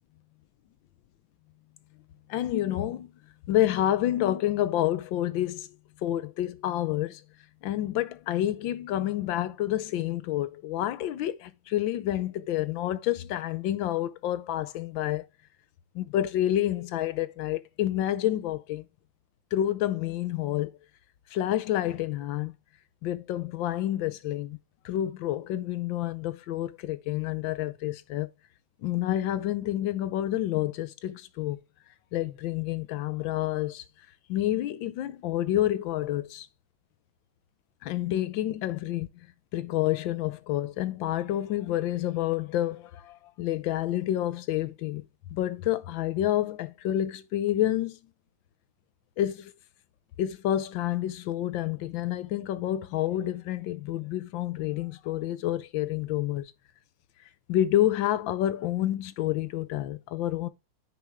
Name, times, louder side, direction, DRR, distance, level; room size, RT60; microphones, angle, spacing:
voice 1, 2.3-3.1 3.5-5.7 6.0-7.2 7.6-15.3 15.9-18.9 19.5-20.8 21.3-22.5 23.0-24.6 24.8-28.3 28.8-31.6 32.1-33.8 34.3-36.5 37.8-39.1 39.5-45.0 45.3-48.0 49.2-49.5 50.2-56.5 57.5-60.5, left 13 dB, 75° left, 1.3 m, -29 dB
9.4 x 5.4 x 3.4 m
omnidirectional pair, 2.2 m